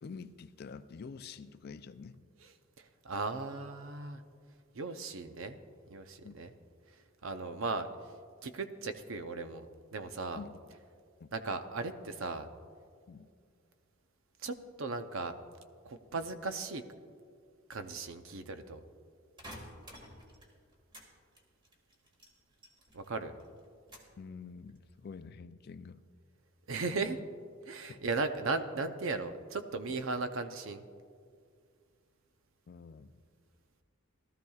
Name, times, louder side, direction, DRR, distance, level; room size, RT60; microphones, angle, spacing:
voice 1, 0.0-2.2 6.2-6.3 10.4-10.6 11.2-11.3 13.1-13.3 16.1-16.2 24.2-26.0 27.9-28.0 32.7-33.2, left 5 dB, 50° left, 12 dB, 0.4 m, -47 dB
voice 2, 2.8-4.2 4.7-5.6 5.9-6.5 7.2-7.9 8.4-9.7 9.9-10.4 11.3-12.5 14.4-15.3 15.8-16.8 17.7-18.8 22.9-23.4 26.7-27.2 27.7-30.9, right 3 dB, 70° right, 8 dB, 0.7 m, -37 dB
sound 1, 19.4-21.1 21.3-23.1 23.4-24.2 24.7-25.2, equal, 25° right, 1.7 m, -51 dB
18.5 x 13.0 x 2.4 m, 2.2 s
head